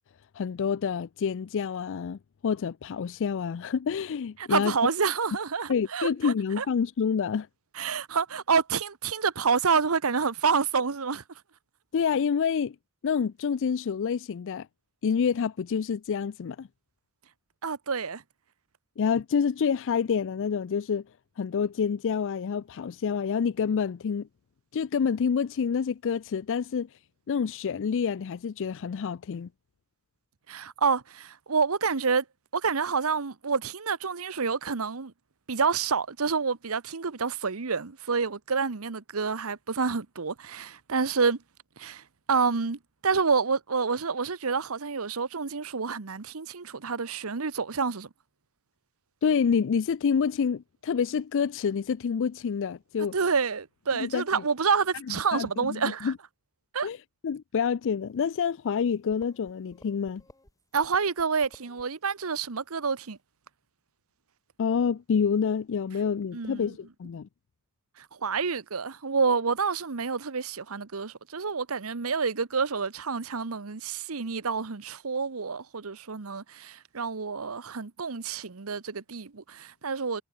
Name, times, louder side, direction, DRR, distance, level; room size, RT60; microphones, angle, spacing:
voice 1, 0.3-4.7 5.7-7.5 11.9-12.8 13.0-14.7 15.0-16.7 19.0-21.0 21.4-24.3 24.7-26.9 27.3-29.5 49.2-53.1 54.0-54.2 55.1-56.2 56.8-57.0 57.2-60.2 64.6-67.3, left 6 dB, 60° left, 0.4 m, -28 dB
voice 2, 4.4-6.7 7.7-11.2 17.6-18.2 30.5-32.2 32.5-35.1 35.5-41.4 41.8-48.1 53.1-56.1 56.7-56.9 60.7-63.2 66.3-66.8 68.0-80.2, right 5 dB, 75° right, 1.0 m, -28 dB
sound 1, 58.8-58.9 59.1-60.5 60.8-61.9, left 1 dB, 15° left, 3.4 m, -56 dB
head